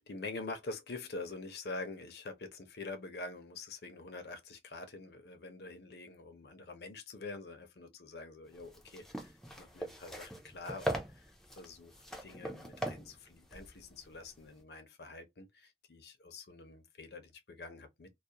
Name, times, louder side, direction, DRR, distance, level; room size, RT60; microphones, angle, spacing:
voice 1, 0.0-11.3 11.6-11.9 12.2-18.1, left 3 dB, 65° left, 0.6 m, -46 dB
sound 1, 8.5-14.6, right 1 dB, 5° left, 0.4 m, -41 dB
2.3 x 2.0 x 2.7 m
head